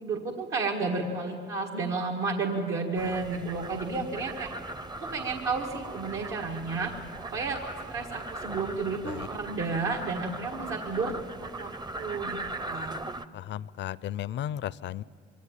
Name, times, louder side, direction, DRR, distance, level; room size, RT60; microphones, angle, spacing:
voice 1, 0.0-4.5 5.0-6.9 7.3-7.6 7.9-11.1 11.6-12.4 12.7-12.9, right 4 dB, 75° right, 1 dB, 1.8 m, -32 dB
sound 1, 3.0-13.3, right 2 dB, 20° right, 0.6 m, -39 dB
voice 2, 13.3-15.0, left 11 dB, 65° left, 20 dB, 0.5 m, -35 dB
23.0 x 16.5 x 8.6 m, 2.4 s
cardioid pair, 90°, 20 cm